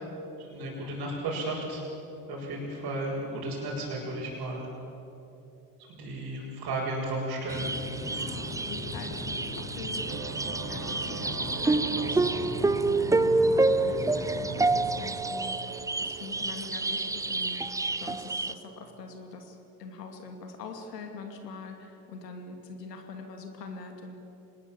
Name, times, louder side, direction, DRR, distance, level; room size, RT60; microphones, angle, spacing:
voice 1, 0.4-1.8 2.3-4.7 5.8-7.7, right 2 dB, 50° right, -6 dB, 6.6 m, -34 dB
sound 1, 7.5-14.8, left 1 dB, 25° left, 6.1 m, -39 dB
sound 2, 7.5-18.5, right 3 dB, 5° right, 0.6 m, -28 dB
voice 2, 8.0-24.2, left 4 dB, 80° left, 4 dB, 2.7 m, -44 dB
sound 3, 10.1-19.6, right 8 dB, 85° right, 1.1 m, -43 dB
25.5 x 20.0 x 7.5 m, 2.9 s
figure-of-eight pair, 65°, 48 cm